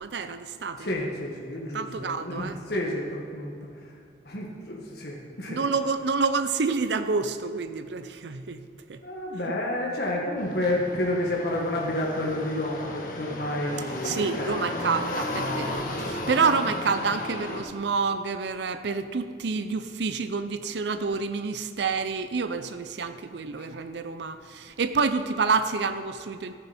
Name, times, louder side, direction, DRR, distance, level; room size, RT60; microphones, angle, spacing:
voice 1, 0.0-0.9 1.7-2.6 5.5-8.6 8.9-9.0 14.0-26.5, right 4 dB, 80° right, 10 dB, 0.6 m, -28 dB
voice 2, 0.8-3.5 4.2-5.6 9.0-14.8 23.5-23.7, left 1 dB, 65° left, -2 dB, 1.6 m, -30 dB
sound 1, 10.4-17.6, left 1 dB, 50° left, 1.3 m, -34 dB
13.5 x 10.0 x 4.3 m, 2.3 s
head